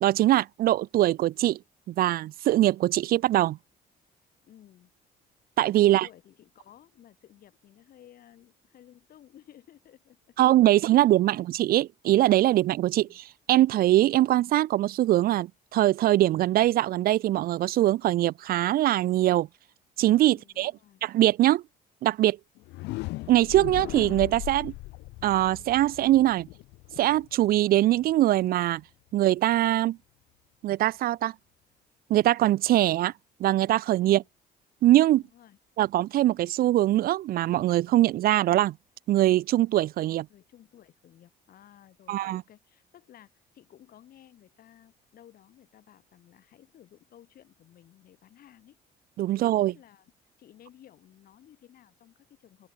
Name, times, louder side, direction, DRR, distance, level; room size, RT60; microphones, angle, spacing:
voice 1, 0.0-1.6 1.9-3.6 5.6-6.1 10.4-19.5 20.0-20.7 21.0-21.6 22.0-22.4 23.3-24.7 25.2-26.5 27.0-28.8 29.1-30.0 30.6-31.3 32.1-33.1 33.4-34.2 34.8-35.2 35.8-38.7 39.1-40.3 42.1-42.4 49.2-49.7, right 14 dB, 60° right, 0.5 m, -22 dB
voice 2, 4.4-4.9 5.8-11.4 12.8-13.2 20.2-21.0 34.0-34.3 35.1-35.6 40.3-48.8 49.4-50.1 50.4-52.7, left 11 dB, 60° left, 7.5 m, -55 dB
sound 1, 22.6-28.4, left 21 dB, 90° left, 0.7 m, -39 dB
open air
cardioid pair, 110°, 17 cm